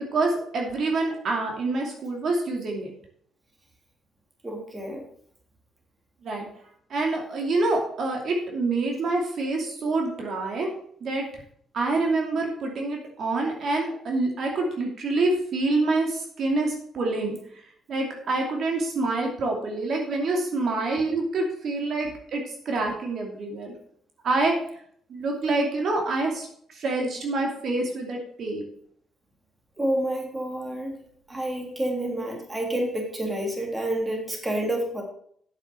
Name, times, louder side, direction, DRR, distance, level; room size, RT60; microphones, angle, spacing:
voice 1, 0.1-2.9 6.2-6.5 6.9-10.7 11.0-11.2 11.7-17.4 17.9-23.7 24.2-24.5 25.1-26.5 26.7-28.6, right 2 dB, 60° right, 1 dB, 2.7 m, -26 dB
voice 2, 4.4-5.0 29.8-30.9 31.3-35.0, right 1 dB, 15° right, 1 dB, 3.2 m, -29 dB
8.9 x 7.6 x 6.1 m, 0.63 s
cardioid pair, 90°, 0 cm